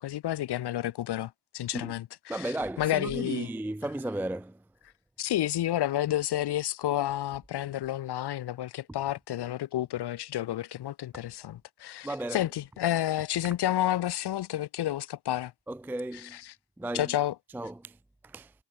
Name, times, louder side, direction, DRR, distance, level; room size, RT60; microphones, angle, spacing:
voice 1, 0.0-3.5 5.2-15.5 16.3-16.5 16.9-17.3, left 13 dB, 65° left, 0.7 m, -30 dB
voice 2, 2.3-4.6 12.0-12.5 15.7-16.4 16.8-17.1 17.5-18.0 18.2-18.5, right 1 dB, 5° right, 0.4 m, -34 dB
wide cardioid pair, 140°, 43 cm